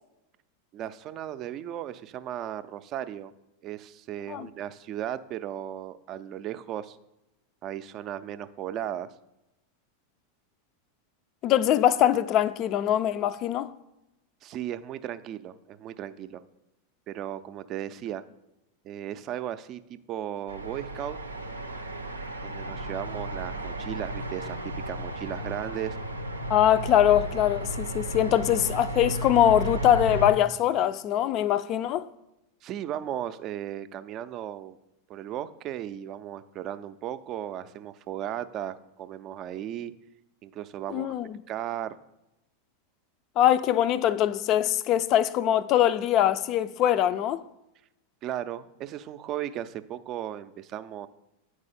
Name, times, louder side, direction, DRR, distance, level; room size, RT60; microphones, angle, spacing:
voice 1, 0.7-3.3 3.6-7.0 7.6-9.1 14.4-16.4 17.1-18.2 18.8-21.2 22.4-26.0 32.6-34.8 35.1-39.9 40.4-41.1 41.5-42.0 48.2-51.1, right 11 dB, 40° right, 0.4 m, -36 dB
voice 2, 11.4-13.7 26.5-32.1 40.9-41.4 43.4-47.4, left 11 dB, 40° left, 0.4 m, -23 dB
sound 1, 20.5-30.3, right 1 dB, 85° right, 0.5 m, -34 dB
9.1 x 4.8 x 4.2 m
figure-of-eight pair, 90°, 0 cm